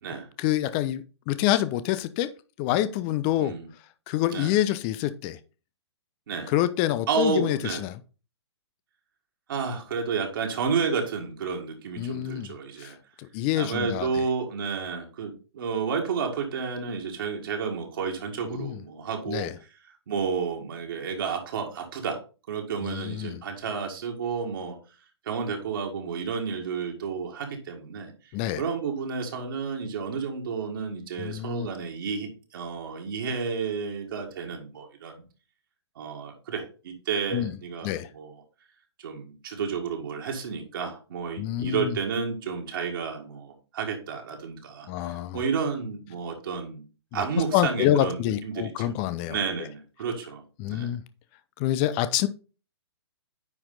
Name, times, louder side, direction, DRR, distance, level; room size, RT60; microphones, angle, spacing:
voice 1, 0.4-2.3 2.6-3.5 4.1-5.4 6.5-8.0 12.0-12.5 12.8-14.1 18.5-18.8 19.3-19.5 22.8-23.4 28.3-28.6 31.2-31.7 37.3-37.5 37.8-38.1 41.4-41.9 44.9-45.4 47.1-47.2 47.5-49.4 50.6-51.0 51.6-52.3, left 13 dB, 25° left, 0.4 m, -27 dB
voice 2, 7.1-7.8 9.5-13.0 13.5-19.5 20.1-22.2 22.5-24.8 25.2-28.1 28.6-35.2 36.0-38.3 39.0-46.8 47.1-48.9 49.3-50.4 50.7-50.9, right 5 dB, 50° right, 1.9 m, -31 dB
9.7 x 4.4 x 3.9 m
figure-of-eight pair, 120°, 15 cm